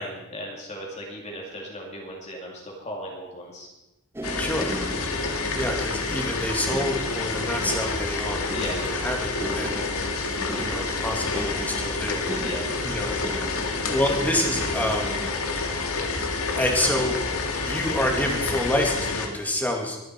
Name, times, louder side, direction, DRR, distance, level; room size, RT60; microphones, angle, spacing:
voice 1, 0.0-3.7 8.5-8.9 12.4-12.7, equal, 30° left, -1 dB, 2.4 m, -36 dB
sound 1, 4.1-17.2 18.0-18.2, right 1 dB, 10° right, 0.7 m, -39 dB
sound 2, 4.2-19.3, left 3 dB, 80° left, 2.0 m, -28 dB
voice 2, 4.4-4.7 5.5-8.6 8.9-10.0 10.5-12.3 12.8-13.2 13.8-15.2 16.5-17.2 17.6-20.0, left 1 dB, 5° left, 1 dB, 2.2 m, -27 dB
22.5 x 9.3 x 4.6 m, 0.96 s
head